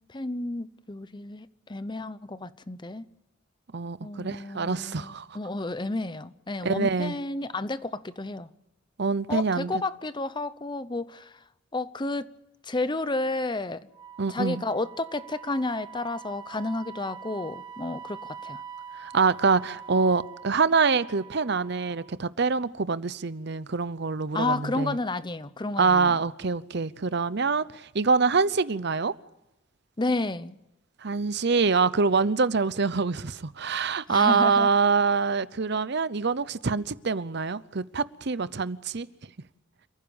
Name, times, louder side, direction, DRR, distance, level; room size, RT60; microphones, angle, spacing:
voice 1, 0.1-3.0 4.0-8.5 9.3-11.3 11.7-12.3 12.7-13.9 14.3-18.6 24.3-26.1 30.0-30.6 34.1-34.7, left 2 dB, 20° left, 0.8 m, -31 dB
voice 2, 3.7-5.3 6.6-7.2 9.0-9.8 14.2-14.6 19.0-25.0 25.8-29.1 31.0-39.1, right 4 dB, 55° right, 0.7 m, -25 dB
Wind instrument woodwind instrument, 13.9-22.2, right 7 dB, 20° right, 1.4 m, -44 dB
28.0 x 15.5 x 7.1 m
head